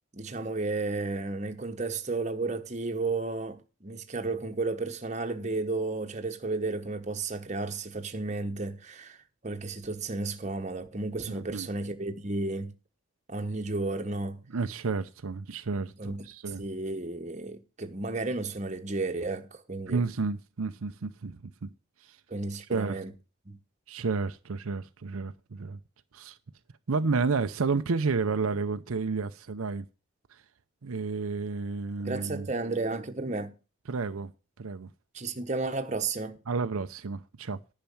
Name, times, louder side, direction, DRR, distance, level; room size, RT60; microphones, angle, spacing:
voice 1, 0.1-9.2 9.4-12.7 13.3-14.4 16.0-16.2 16.6-20.0 22.3-23.1 23.5-23.6 32.0-33.5 35.1-36.4, right 3 dB, 35° right, 1.1 m, -33 dB
voice 2, 11.3-11.7 14.5-16.7 19.9-21.7 22.0-22.2 22.7-23.0 23.9-25.8 26.1-26.4 26.9-29.9 30.3-30.4 30.8-32.5 33.9-34.3 34.6-34.9 36.5-37.6, right 4 dB, 80° right, 0.6 m, -31 dB
10.5 x 5.8 x 7.1 m
head